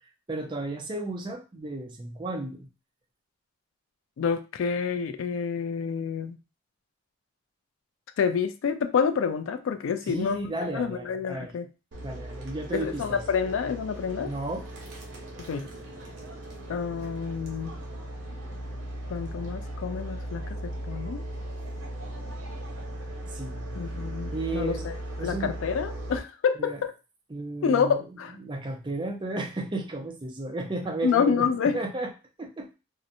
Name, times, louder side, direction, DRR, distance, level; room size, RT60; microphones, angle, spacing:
voice 1, 0.3-2.7 10.0-11.5 12.0-13.2 14.3-14.7 23.3-23.7 24.3-24.9 25.2-25.5 26.6-26.8 27.3-28.0 28.4-31.5 31.7-32.1 32.4-32.7, right 2 dB, 25° right, 3 dB, 0.4 m, -33 dB
voice 2, 4.2-6.4 8.2-11.7 12.7-14.3 15.5-15.7 16.7-17.7 19.1-21.2 23.8-24.9 25.2-26.9 27.6-28.3 31.0-31.8, left 6 dB, 80° left, 9 dB, 0.3 m, -28 dB
sound 1, 11.9-26.2, right 1 dB, 65° right, 0.8 m, -37 dB
2.7 x 2.1 x 2.6 m, 0.30 s
head